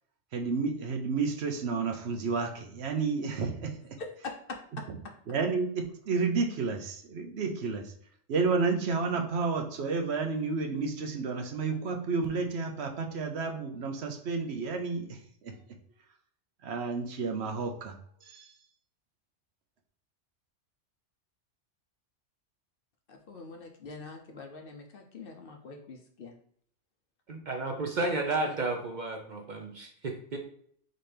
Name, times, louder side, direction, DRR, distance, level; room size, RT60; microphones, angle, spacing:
voice 1, 0.3-4.0 5.3-7.9 8.3-15.6 16.6-18.0 18.2-18.5, right 4 dB, 65° right, 4 dB, 0.9 m, -31 dB
voice 2, 4.0-5.1 23.1-26.3 28.4-28.6, left 3 dB, 55° left, 3 dB, 0.8 m, -44 dB
voice 3, 27.3-30.4, right 2 dB, 50° right, 3 dB, 0.6 m, -32 dB
4.3 x 3.8 x 3.3 m, 0.63 s
omnidirectional pair, 1.2 m